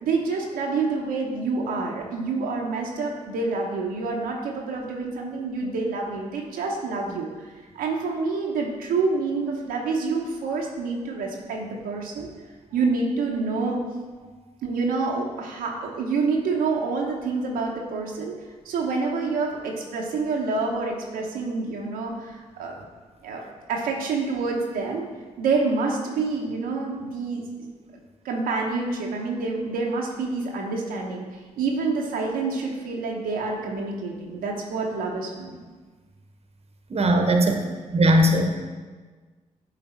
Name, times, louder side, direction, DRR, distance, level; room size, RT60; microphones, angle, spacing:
voice 1, 0.0-12.3 12.7-13.8 14.6-18.4 18.6-22.9 23.2-23.4 23.7-25.1 25.4-27.4 28.2-31.2 31.6-35.6, right 4 dB, 80° right, -1 dB, 0.8 m, -27 dB
voice 2, 36.9-37.5 37.9-38.5, right 1 dB, 45° right, 4 dB, 0.9 m, -18 dB
8.1 x 3.3 x 4.3 m, 1.4 s
hypercardioid pair, 45°, 15 cm